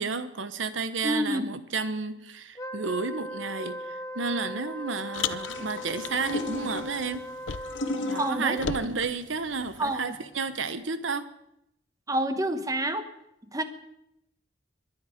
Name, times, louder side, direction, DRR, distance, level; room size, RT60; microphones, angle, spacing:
voice 1, 0.0-7.3 8.1-11.3, right 4 dB, 85° right, 1.1 m, -31 dB
voice 2, 1.0-1.4 8.2-8.6 9.8-10.2 12.1-13.1 13.5-13.6, right 1 dB, 20° right, 1.1 m, -28 dB
Wind instrument woodwind instrument, 2.5-8.9, equal, 20° left, 1.0 m, -39 dB
Car, 5.1-8.0 8.2-10.0, left 7 dB, 90° left, 0.6 m, -37 dB
sound 1, 5.5-10.7, left 2 dB, 75° left, 1.8 m, -37 dB
22.0 x 10.5 x 5.2 m
head